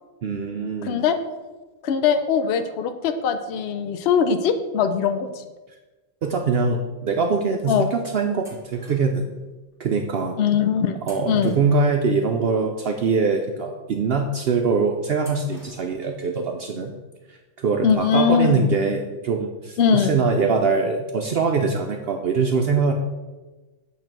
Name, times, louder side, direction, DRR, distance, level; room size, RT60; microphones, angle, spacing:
voice 1, 0.2-1.0 6.2-9.3 9.8-10.3 11.1-16.9 17.6-22.9, right 4 dB, 60° right, 3 dB, 0.8 m, -23 dB
voice 2, 0.8-1.2 1.8-5.4 7.7-7.8 10.4-11.0 11.3-11.6 17.8-18.7 19.8-20.1, left 7 dB, 60° left, 8 dB, 0.8 m, -21 dB
sound 1, 8.4-9.3 11.0-12.1 15.2-16.1, equal, ahead, 1.4 m, -48 dB
8.9 x 3.3 x 5.9 m, 1.2 s
omnidirectional pair, 1.3 m